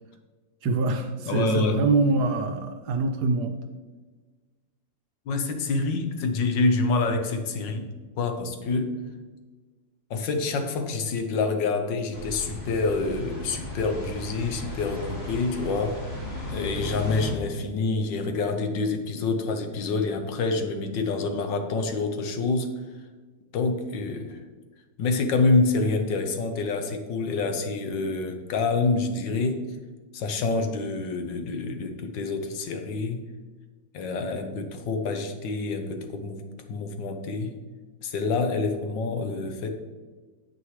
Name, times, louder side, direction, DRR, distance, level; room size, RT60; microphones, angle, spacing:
voice 1, 0.6-3.6, right 3 dB, 70° right, 6 dB, 1.1 m, -24 dB
voice 2, 1.2-1.8 5.3-7.9 8.2-8.9 10.1-16.0 16.5-22.7 23.5-24.4 25.0-29.6 30.1-33.2 33.9-37.5 38.0-39.7, left 3 dB, 70° left, 6 dB, 1.5 m, -27 dB
sound 1, 12.1-17.3, left 1 dB, 30° left, 2.2 m, -36 dB
9.2 x 7.6 x 3.2 m, 1.3 s
omnidirectional pair, 2.1 m